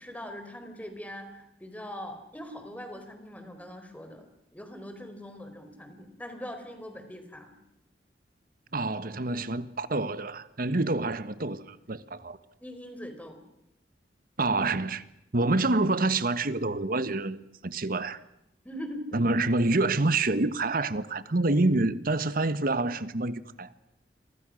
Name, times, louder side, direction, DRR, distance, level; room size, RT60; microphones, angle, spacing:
voice 1, 0.0-4.3 4.5-7.6 12.6-13.4 18.6-19.2, equal, 10° left, 4.2 m, -41 dB
voice 2, 8.7-12.4 14.4-15.0 15.3-18.2 19.1-23.7, right 2 dB, 55° right, 1.3 m, -27 dB
29.5 x 24.0 x 6.4 m
head